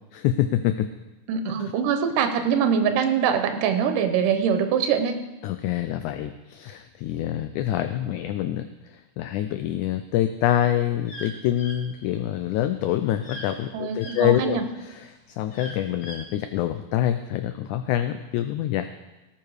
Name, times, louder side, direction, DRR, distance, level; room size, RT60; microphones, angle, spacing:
voice 1, 0.1-0.9 1.6-1.7 5.4-18.9, left 12 dB, 85° left, 10 dB, 1.7 m, -26 dB
voice 2, 1.3-5.2 13.7-14.6, right 7 dB, 75° right, 7 dB, 2.4 m, -23 dB
sound 1, 10.3-14.2 14.7-16.3, equal, 65° left, 3.7 m, -41 dB
18.0 x 7.5 x 4.8 m, 1.1 s
omnidirectional pair, 4.0 m